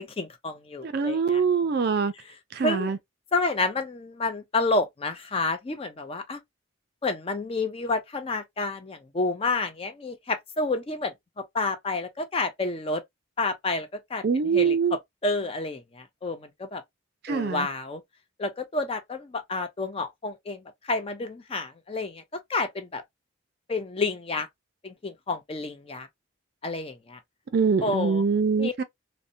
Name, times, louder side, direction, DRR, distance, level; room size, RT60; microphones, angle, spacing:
voice 1, 0.0-1.4 2.6-2.9 3.3-6.4 7.0-13.0 13.4-14.2 14.5-16.8 17.3-18.0 18.4-22.2 22.5-23.0 23.7-24.5 24.8-26.1 26.6-27.2 27.8-28.2 28.6-28.7, left 3 dB, 25° left, 0.4 m, -29 dB
voice 2, 0.8-2.1 2.5-3.0 14.2-15.0 17.2-17.7 27.5-28.8, right 5 dB, 50° right, 0.3 m, -24 dB
2.6 x 2.1 x 2.5 m
head